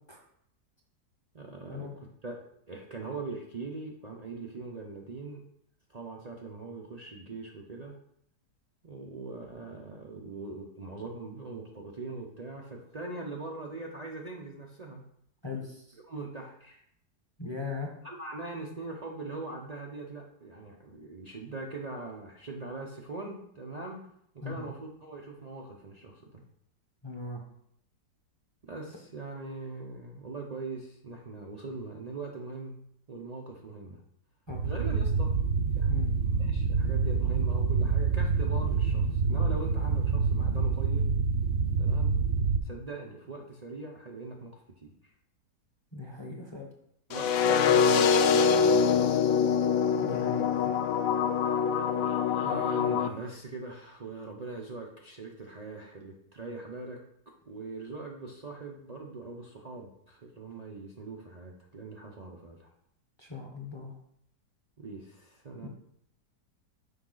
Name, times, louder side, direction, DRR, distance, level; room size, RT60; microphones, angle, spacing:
voice 1, 1.3-1.9 2.2-5.4 5.9-8.0 8.8-15.0 16.1-16.8 18.0-24.1 24.3-26.4 28.6-32.8 33.1-34.0 34.6-35.3 35.7-36.1 36.4-41.1 41.8-42.1 42.6-44.9 47.1-49.0 52.1-52.2 52.4-57.0 57.5-62.7 64.8-65.7, right 3 dB, 80° right, -2 dB, 0.3 m, -41 dB
voice 2, 15.4-16.0 17.4-17.9 24.4-24.7 27.0-27.4 34.5-34.6 35.9-36.1 45.9-46.7 50.0-50.8 63.2-64.0 65.6-65.7, left 4 dB, 25° left, 0 dB, 0.7 m, -39 dB
sound 1, 34.5-42.6, right 5 dB, 60° right, 0.7 m, -27 dB
sound 2, 47.1-53.1, left 6 dB, 70° left, 0.8 m, -24 dB
6.8 x 4.8 x 3.9 m, 0.70 s
omnidirectional pair, 1.8 m